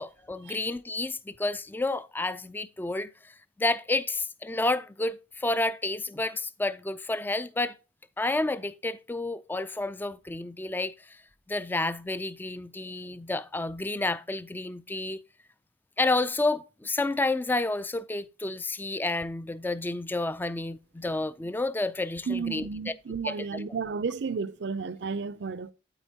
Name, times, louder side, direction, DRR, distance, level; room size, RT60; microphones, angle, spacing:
voice 1, 0.0-7.8 8.2-11.2 11.5-15.2 16.0-23.0 23.2-23.7, left 2 dB, 10° left, 0.3 m, -30 dB
voice 2, 22.3-25.7, right 5 dB, 60° right, 0.5 m, -32 dB
9.0 x 8.5 x 2.8 m
head